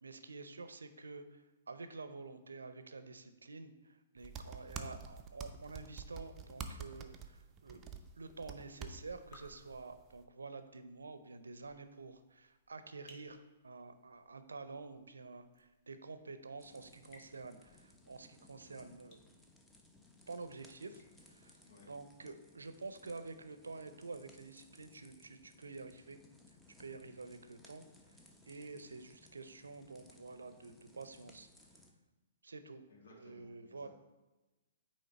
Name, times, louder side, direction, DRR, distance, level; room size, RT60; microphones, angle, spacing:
voice 1, 0.0-7.8 8.2-19.2 20.3-21.6 21.9-26.2 26.8-27.8 28.5-31.5 32.4-32.8 33.1-33.9, right 3 dB, 80° right, 10 dB, 0.5 m, -49 dB
sound 1, 4.2-10.2, right 5 dB, 25° right, 0.5 m, -48 dB
sound 2, 8.2-22.0, left 2 dB, 40° left, 1.4 m, -68 dB
sound 3, 16.6-31.9, left 2 dB, 5° left, 0.8 m, -63 dB
voice 2, 32.9-33.9, left 2 dB, 65° left, -2 dB, 1.6 m, -60 dB
8.7 x 3.1 x 4.1 m, 1.1 s
figure-of-eight pair, 120°, 0 cm